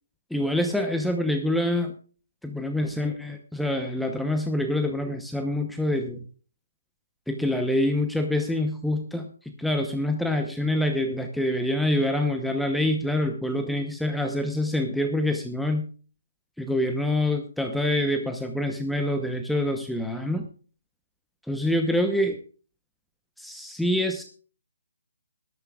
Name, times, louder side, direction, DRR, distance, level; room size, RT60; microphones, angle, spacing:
voice 1, 0.3-1.9 2.4-6.2 7.3-9.3 9.6-15.9 16.6-20.4 21.5-22.4 23.4-24.2, left 1 dB, ahead, 4 dB, 0.9 m, -26 dB
19.0 x 12.5 x 2.4 m, 0.38 s
figure-of-eight pair, 145°, 0 cm